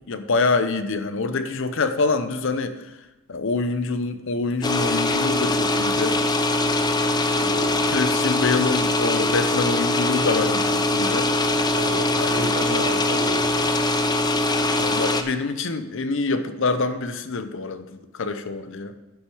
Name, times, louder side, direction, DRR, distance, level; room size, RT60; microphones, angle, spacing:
voice 1, 0.1-2.8 3.3-6.2 7.2-11.3 12.2-13.0 14.8-18.9, left 3 dB, 65° left, 10 dB, 0.7 m, -26 dB
sound 1, 4.6-15.2, left 2 dB, 20° left, 0.5 m, -22 dB
voice 2, 11.4-13.8, right 3 dB, 60° right, 7 dB, 0.9 m, -34 dB
10.5 x 6.1 x 4.8 m, 1.1 s
head